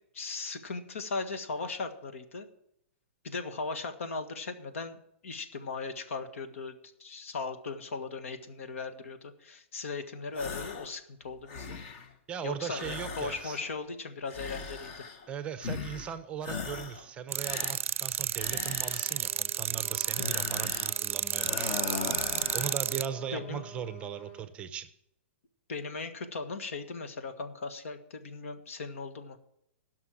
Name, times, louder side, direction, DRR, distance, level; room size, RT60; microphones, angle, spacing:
voice 1, 0.1-2.5 3.2-11.8 12.4-15.0 23.3-23.6 25.7-29.4, left 4 dB, 85° left, 8 dB, 1.7 m, -38 dB
sound 1, 10.3-10.9 11.3-12.1 12.7-13.8 14.3-15.3 15.6-16.1 16.4-17.1 17.4-19.3 20.0-21.0 21.3-22.8, left 5 dB, 35° left, 1.3 m, -39 dB
voice 2, 12.3-13.6 15.3-21.8 22.5-24.9, right 8 dB, 15° right, 12 dB, 0.6 m, -38 dB
sound 2, 17.3-23.1, right 10 dB, 80° right, 0.4 m, -31 dB
Trumpet, 18.8-24.5, right 2 dB, 20° left, 3.2 m, -49 dB
16.5 x 6.0 x 6.1 m, 0.75 s
hypercardioid pair, 160°, 7 cm